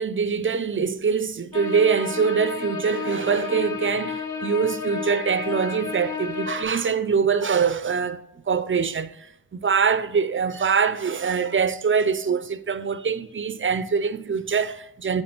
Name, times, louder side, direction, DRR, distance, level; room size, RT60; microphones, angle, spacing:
voice 1, 0.0-9.3 9.5-15.2, right 6 dB, 35° right, 0.4 m, -24 dB
sound 1, 1.5-6.6, left 6 dB, 50° left, 0.9 m, -31 dB
9.4 x 4.0 x 2.9 m
wide cardioid pair, 75°, 37 cm